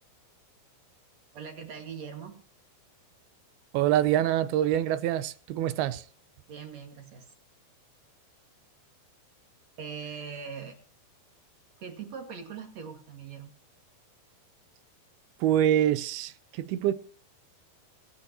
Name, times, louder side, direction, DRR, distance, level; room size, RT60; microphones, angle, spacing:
voice 1, 1.3-2.4 6.5-7.3 9.8-10.8 11.8-13.5, right 6 dB, 50° right, 2.6 m, -41 dB
voice 2, 3.7-6.0 15.4-16.9, right 11 dB, 80° right, 2.5 m, -25 dB
23.5 x 9.3 x 2.9 m
omnidirectional pair, 4.6 m